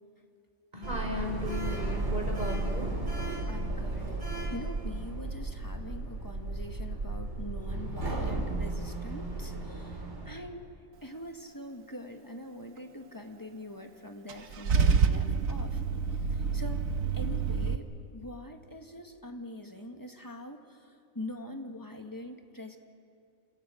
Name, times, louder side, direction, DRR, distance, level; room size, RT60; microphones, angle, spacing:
voice 1, 0.7-2.9, left 1 dB, 35° right, 0 dB, 5.1 m, -36 dB
Sliding door, 0.8-10.4, right 2 dB, 55° right, 3.2 m, -34 dB
voice 2, 3.5-10.7 11.0-15.8 16.3-16.9 17.1-20.9 21.1-22.8, left 1 dB, 15° left, 4 dB, 1.5 m, -44 dB
Car / Engine starting / Idling, 14.3-17.8, right 5 dB, 75° right, 1.4 m, -27 dB
28.5 x 27.5 x 5.1 m, 2.4 s
omnidirectional pair, 1.4 m